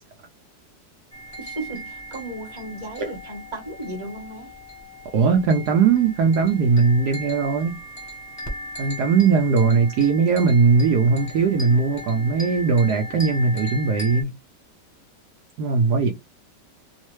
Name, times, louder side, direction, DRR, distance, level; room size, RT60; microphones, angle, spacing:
sound 1, 1.1-14.2, equal, 15° left, 0.7 m, -38 dB
voice 1, 1.4-4.5, right 2 dB, 20° right, 1.0 m, -35 dB
voice 2, 5.1-7.8 8.8-14.3 15.6-16.1, right 5 dB, 70° right, 1.1 m, -19 dB
3.1 x 2.1 x 3.0 m
omnidirectional pair, 1.9 m